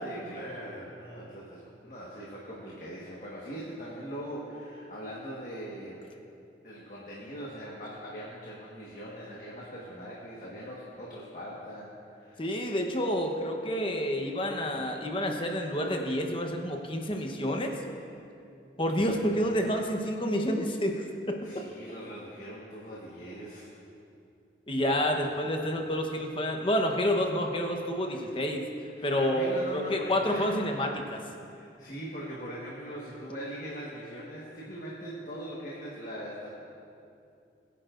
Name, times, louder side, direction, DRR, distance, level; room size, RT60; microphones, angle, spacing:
voice 1, 0.0-6.0 6.6-12.6 21.4-23.7 28.1-28.4 28.9-30.6 31.5-36.5, equal, 45° left, -5 dB, 1.5 m, -41 dB
voice 2, 12.4-17.7 18.8-21.4 24.7-28.6 29.0-31.2, equal, 30° left, 3 dB, 1.0 m, -29 dB
21.5 x 10.0 x 2.6 m, 2.6 s
head